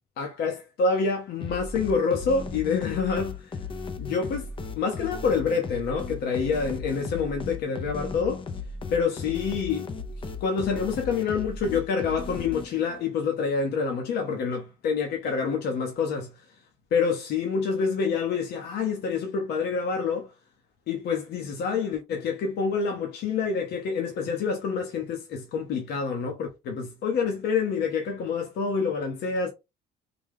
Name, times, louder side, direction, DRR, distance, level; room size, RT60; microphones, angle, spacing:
voice 1, 0.2-3.5 4.0-8.4 8.9-9.9 10.4-16.4 16.9-20.3 20.9-29.5, left 5 dB, 75° left, 1.0 m, -27 dB
sound 1, 1.4-13.0, left 4 dB, 30° left, 0.6 m, -36 dB
3.4 x 2.3 x 3.7 m
cardioid pair, 110°, 17 cm